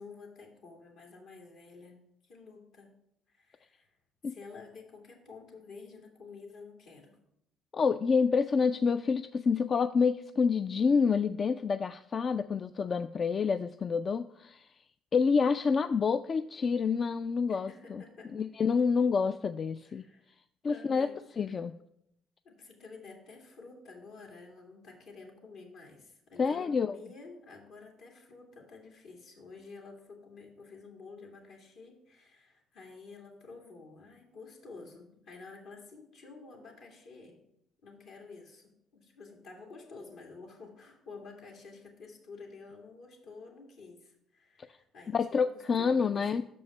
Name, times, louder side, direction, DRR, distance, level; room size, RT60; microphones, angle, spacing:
voice 1, 0.0-2.9 3.3-3.9 4.2-7.2 17.5-18.5 19.8-20.4 20.7-21.3 22.4-37.4 37.8-46.4, left 4 dB, 75° left, 0 dB, 2.2 m, -50 dB
voice 2, 7.7-14.7 15.1-18.0 18.3-20.0 20.6-21.1 21.4-21.7 26.4-27.0 45.1-46.4, left 5 dB, 45° left, 11 dB, 0.3 m, -28 dB
6.4 x 5.4 x 6.8 m, 0.76 s
supercardioid pair, 65°, 0 cm